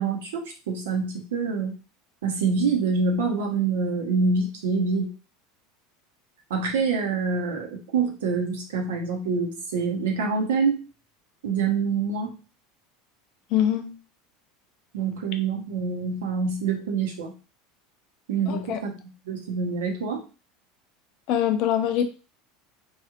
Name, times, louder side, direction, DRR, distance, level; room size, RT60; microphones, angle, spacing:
voice 1, 0.0-1.8 2.2-5.1 6.5-10.8 11.4-12.3 14.9-17.3 18.3-18.9 19.2-20.2, right 4 dB, 70° right, 0 dB, 0.9 m, -26 dB
voice 2, 13.5-13.9 18.5-18.8 21.3-22.1, left 10 dB, 55° left, 7 dB, 0.5 m, -23 dB
3.1 x 2.6 x 2.5 m, 0.33 s
figure-of-eight pair, 80°, 0 cm